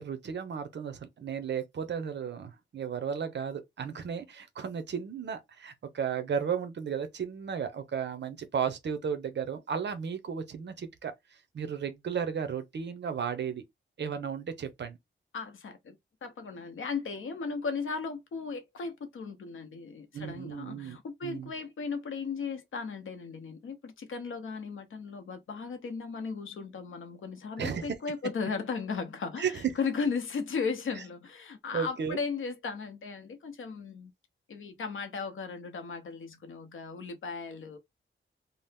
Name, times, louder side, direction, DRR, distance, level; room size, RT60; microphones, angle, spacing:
voice 1, 0.0-13.6 14.0-15.0 20.1-21.0 21.2-21.5 27.6-27.9 29.4-29.7 31.7-32.2, right 7 dB, 55° right, 0.6 m, -34 dB
voice 2, 15.3-34.1 34.5-37.8, left 5 dB, 70° left, 0.7 m, -36 dB
2.8 x 2.0 x 3.3 m
wide cardioid pair, 175°, 21 cm